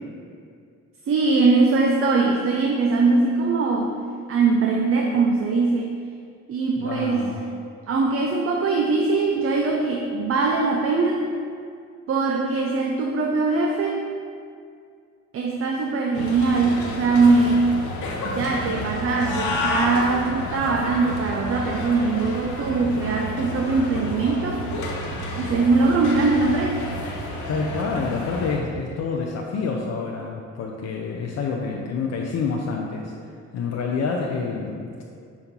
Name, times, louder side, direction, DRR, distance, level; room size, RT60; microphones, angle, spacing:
voice 1, 1.1-3.9 4.3-5.9 6.5-7.3 7.9-11.3 12.1-14.1 15.3-17.6 18.2-24.6 25.4-26.8, right 3 dB, 50° right, 1 dB, 0.6 m, -21 dB
voice 2, 6.8-7.4 27.5-34.9, left 4 dB, 60° left, 0 dB, 0.6 m, -28 dB
sound 1, 16.1-28.6, left 1 dB, 75° left, 1.0 m, -30 dB
7.1 x 2.7 x 5.3 m, 2.3 s
cardioid pair, 90°, 30 cm